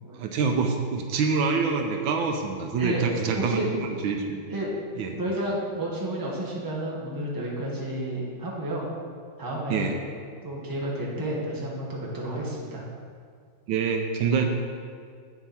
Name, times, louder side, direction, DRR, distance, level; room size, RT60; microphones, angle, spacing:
voice 1, 0.1-4.4 5.0-5.2 9.7-10.0 13.7-14.4, right 5 dB, 75° right, 4 dB, 1.4 m, -26 dB
voice 2, 2.8-3.7 4.5-4.7 5.2-8.9 9.4-9.9 10.4-12.8, right 1 dB, 10° right, -4 dB, 1.3 m, -31 dB
9.0 x 7.0 x 4.3 m, 2.1 s
omnidirectional pair, 2.2 m